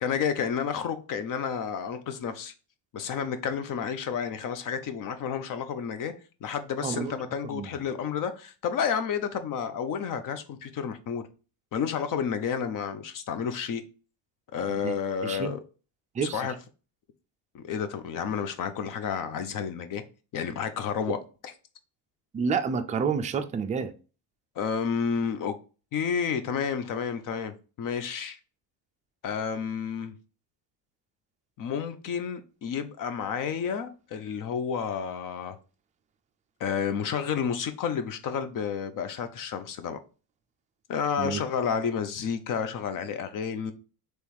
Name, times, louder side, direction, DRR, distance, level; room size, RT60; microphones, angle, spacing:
voice 1, 0.0-2.5 2.9-6.1 6.4-11.2 11.7-13.8 14.5-15.6 16.2-16.6 17.5-20.0 20.3-21.2 24.6-25.5 25.9-28.4 29.2-30.1 31.6-35.6 36.6-40.0 40.9-43.7, left 7 dB, 45° left, 0.7 m, -30 dB
voice 2, 6.8-7.1 7.5-7.7 14.7-15.0 15.2-15.5 16.1-16.4 22.3-23.9 41.2-41.4, right 6 dB, 20° right, 0.3 m, -29 dB
3.4 x 3.1 x 4.5 m
cardioid pair, 115°, 43 cm